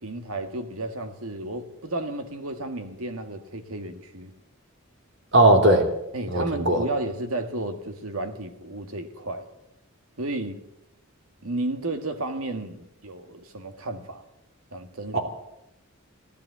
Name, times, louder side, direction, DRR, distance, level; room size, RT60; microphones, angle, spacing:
voice 1, 0.0-4.3 6.1-9.5 10.2-10.6 11.4-14.2 14.7-15.2, right 2 dB, 85° right, 1.7 m, -32 dB
voice 2, 5.3-5.9 6.3-6.8 15.1-15.2, right 1 dB, 60° right, 2.8 m, -18 dB
14.5 x 12.0 x 8.1 m
head